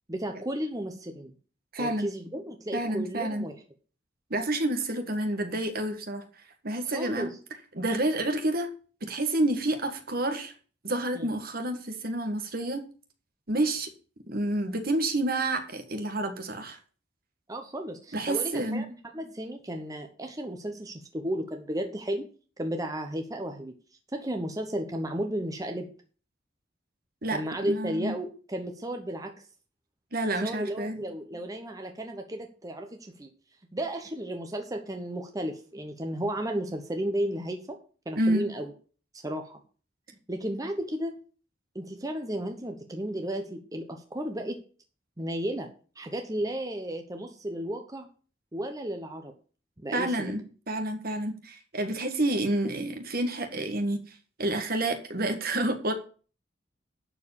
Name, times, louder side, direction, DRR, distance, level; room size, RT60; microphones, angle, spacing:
voice 1, 0.1-1.3 1.8-3.6 6.9-7.3 11.1-11.3 17.5-18.9 19.1-22.2 22.6-23.7 24.1-25.9 27.3-29.3 30.4-33.3 33.7-37.8 38.1-38.7 39.2-39.6 40.3-41.1 41.7-44.6 45.2-45.7 46.0-48.1 48.5-49.3 49.8-50.3, right 1 dB, 20° right, 4 dB, 1.0 m, -33 dB
voice 2, 1.7-2.1 2.7-3.4 4.3-6.2 6.6-7.3 7.7-8.7 9.0-10.5 10.8-12.8 13.5-13.9 14.3-16.8 18.1-18.8 27.2-28.1 30.1-31.0 38.1-38.4 49.9-54.0 54.4-55.9, right 1 dB, 55° right, 7 dB, 1.7 m, -29 dB
11.5 x 4.8 x 7.2 m, 0.39 s
head